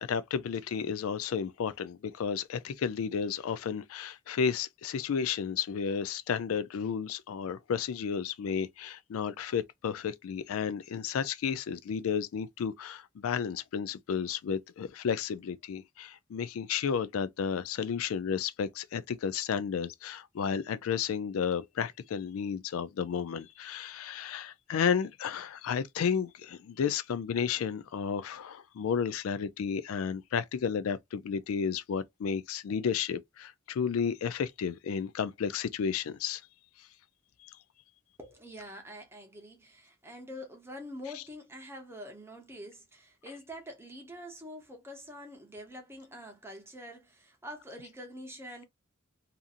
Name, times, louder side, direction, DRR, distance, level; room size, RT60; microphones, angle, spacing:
voice 1, 0.0-36.4 37.4-37.5, left 7 dB, 85° left, 0.3 m, -32 dB
voice 2, 38.2-48.6, equal, 10° right, 0.7 m, -45 dB
2.7 x 2.5 x 2.4 m
head